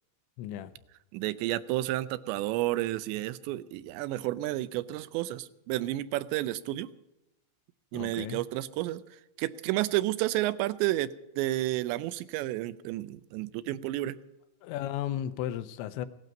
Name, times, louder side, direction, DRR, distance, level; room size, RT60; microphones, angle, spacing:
voice 1, 0.4-0.7 7.9-8.4 14.6-16.1, left 11 dB, 85° left, 12 dB, 3.1 m, -34 dB
voice 2, 1.1-6.9 7.9-9.0 9.4-14.2, right 16 dB, 85° right, 15 dB, 2.8 m, -31 dB
17.5 x 12.0 x 5.3 m, 0.89 s
omnidirectional pair, 5.1 m